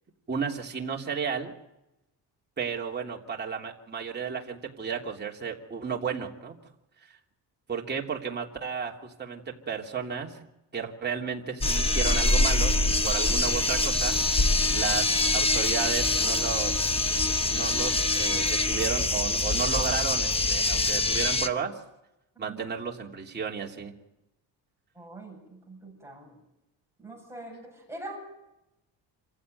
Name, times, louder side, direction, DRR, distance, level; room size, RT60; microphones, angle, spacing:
voice 1, 0.3-1.5 2.6-6.5 7.7-10.3 10.7-14.2 14.7-16.9 17.5-21.7 22.4-23.9, right 6 dB, 25° right, -1 dB, 3.1 m, -33 dB
sound 1, 11.6-18.9, left 2 dB, 45° left, 5.0 m, -39 dB
sound 2, 11.6-21.5, left 2 dB, 15° left, 1.0 m, -25 dB
voice 2, 24.9-26.4 27.0-28.2, right 2 dB, 5° right, -1 dB, 7.7 m, -43 dB
27.0 x 15.5 x 9.3 m, 0.91 s
cardioid pair, 145°, 42 cm